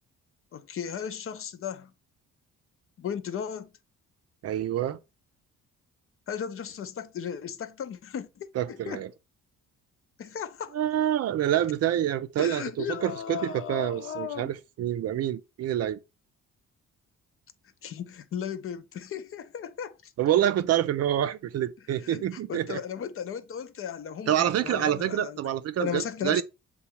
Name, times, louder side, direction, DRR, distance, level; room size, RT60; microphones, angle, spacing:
voice 1, 0.5-1.9 3.0-3.7 6.3-9.0 10.2-10.7 12.4-14.5 17.8-20.1 22.0-25.4 25.8-26.4, left 8 dB, 45° left, 0.5 m, -36 dB
voice 2, 4.4-5.0 8.5-9.1 10.7-16.0 20.2-22.8 24.3-26.4, right 11 dB, 55° right, 0.5 m, -27 dB
6.9 x 2.3 x 2.9 m
cardioid pair, 90°, 30 cm